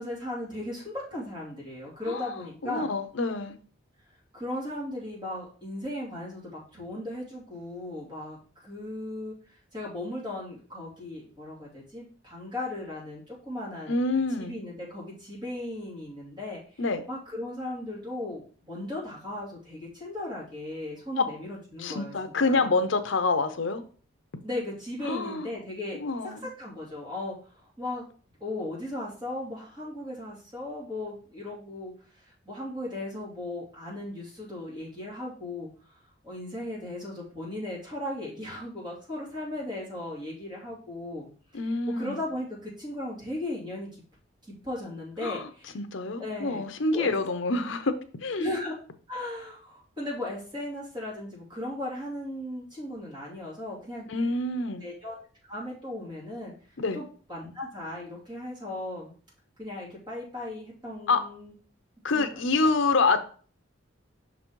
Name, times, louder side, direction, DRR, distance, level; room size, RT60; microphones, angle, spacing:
voice 1, 0.0-2.9 4.3-14.0 14.4-22.8 24.4-28.0 28.4-36.0 36.2-41.3 41.9-43.9 44.4-45.8 46.2-46.7 46.9-47.1 48.4-48.8 49.1-54.1 54.8-55.2 55.5-56.5 56.9-59.1 59.6-61.5 62.1-62.7, left 1 dB, 20° right, -6 dB, 2.9 m, -37 dB
voice 2, 2.1-2.4 2.6-3.6 13.9-14.5 16.8-17.0 21.2-21.3 21.8-23.8 25.1-25.5 25.9-26.5 41.5-42.2 45.2-45.5 45.7-47.9 48.2-48.5 54.1-54.8 56.8-57.0 61.1-61.2 62.0-63.2, left 3 dB, 70° left, 10 dB, 0.7 m, -27 dB
5.9 x 4.1 x 4.5 m, 0.42 s
head